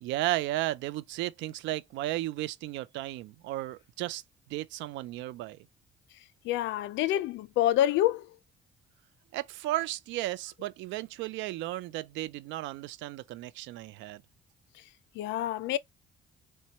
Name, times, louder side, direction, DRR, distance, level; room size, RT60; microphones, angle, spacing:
voice 1, 0.0-4.2 4.5-5.7 9.3-14.2, right 16 dB, 85° right, 0.4 m, -34 dB
voice 2, 6.4-8.2 15.2-15.8, left 13 dB, 80° left, 0.4 m, -27 dB
4.3 x 2.2 x 2.8 m
cardioid pair, 85°, 19 cm